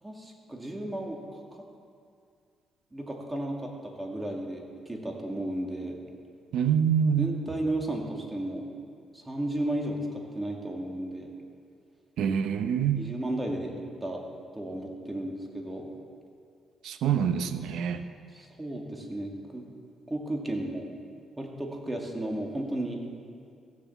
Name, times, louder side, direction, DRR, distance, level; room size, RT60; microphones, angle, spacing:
voice 1, 0.0-1.2 2.9-6.0 7.2-8.6 9.1-11.3 13.0-14.2 14.5-15.9 18.3-19.7 20.1-20.9 21.4-23.0, right 1 dB, 15° right, 0 dB, 2.3 m, -34 dB
voice 2, 6.5-7.3 12.2-13.0 16.8-18.0, right 8 dB, 80° right, 9 dB, 0.8 m, -25 dB
15.5 x 7.6 x 7.1 m, 2.3 s
cardioid pair, 90°, 0 cm